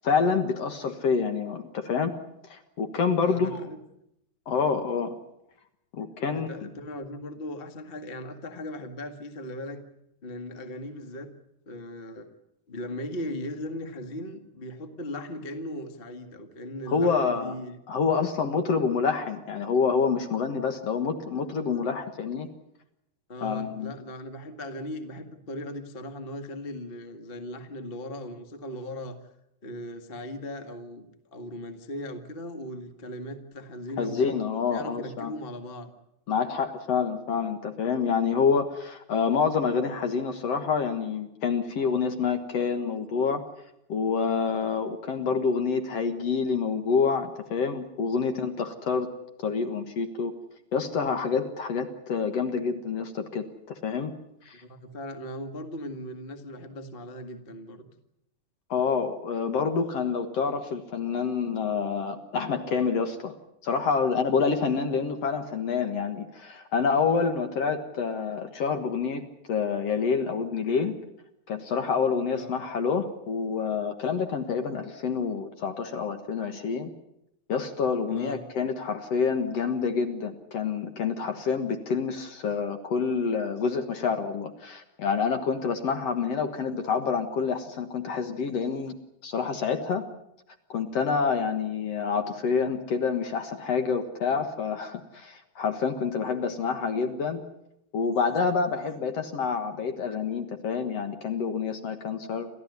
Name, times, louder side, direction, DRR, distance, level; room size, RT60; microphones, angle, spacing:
voice 1, 0.0-2.1 2.5-3.6 4.5-5.1 5.9-6.5 16.9-17.5 17.9-22.5 23.4-23.9 34.0-35.3 36.3-43.4 43.9-49.1 49.4-50.3 50.7-54.1 54.5-54.6 58.7-63.3 63.6-69.2 69.5-70.9 71.5-76.9 77.5-90.0 90.7-97.4 97.9-102.5, left 5 dB, 55° left, 6 dB, 2.2 m, -27 dB
voice 2, 3.2-3.8 6.3-9.8 10.2-11.3 11.6-12.3 12.7-17.8 23.3-29.2 29.6-34.4 34.6-35.9 54.6-57.9 72.3-72.5 78.1-78.4, left 1 dB, 25° left, 6 dB, 1.3 m, -38 dB
29.0 x 14.0 x 9.6 m, 0.84 s
omnidirectional pair, 3.9 m